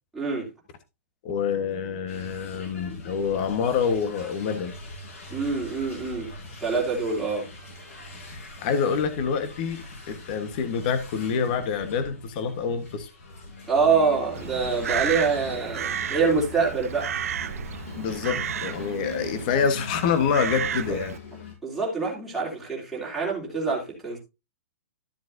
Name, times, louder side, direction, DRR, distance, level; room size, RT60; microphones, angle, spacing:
voice 1, 0.2-0.5 5.3-6.3 6.6-7.5 13.7-17.1 20.9-21.0 21.6-24.2, right 4 dB, ahead, 3.2 m, -25 dB
voice 2, 1.2-4.7 8.6-13.1 18.0-21.1, left 6 dB, 35° left, 1.3 m, -26 dB
sound 1, 2.1-21.5, left 3 dB, 65° left, 6.0 m, -42 dB
Crow, 14.4-21.2, right 8 dB, 70° right, 0.9 m, -33 dB
13.0 x 7.3 x 2.7 m
hypercardioid pair, 170°, 8 cm